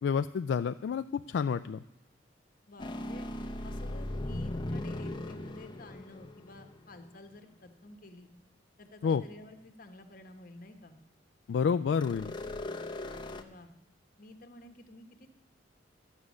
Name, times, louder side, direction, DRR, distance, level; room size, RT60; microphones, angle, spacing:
voice 1, 0.0-1.8 9.0-9.2 11.5-12.3, left 6 dB, 75° left, 11 dB, 0.3 m, -29 dB
voice 2, 2.7-3.3 3.6-8.3 8.8-11.0 13.4-13.7 14.2-15.3, left 1 dB, 50° left, 6 dB, 1.2 m, -51 dB
sound 1, 2.8-7.1 12.0-13.4, left 1 dB, 25° left, 0.8 m, -38 dB
12.0 x 8.2 x 6.3 m, 0.90 s
head